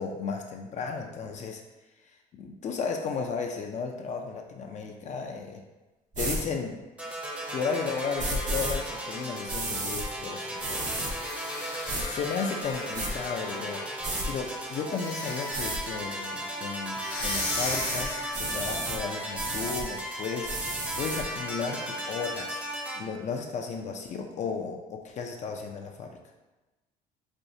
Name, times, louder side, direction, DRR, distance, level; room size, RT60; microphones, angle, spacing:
voice 1, 0.0-1.6 2.3-5.6 6.2-6.8 7.5-11.1 12.0-20.5 21.0-22.6 22.9-26.2, left 5 dB, 45° left, 3 dB, 0.4 m, -34 dB
sound 1, 6.1-6.4 8.2-8.7 9.5-10.0 10.6-11.1 11.9-12.0 12.6-13.1 14.0-14.3 15.5-15.8 17.2-18.1 18.3-19.0 19.3-19.8 20.4-21.2, right 2 dB, 45° right, 0.9 m, -32 dB
sound 2, 7.0-23.0, right 1 dB, 10° right, 0.6 m, -36 dB
sound 3, 10.8-13.8 14.9-16.0 16.9-18.6, left 3 dB, 70° left, 0.8 m, -38 dB
4.3 x 2.3 x 2.6 m, 1.1 s
cardioid pair, 110°, 17 cm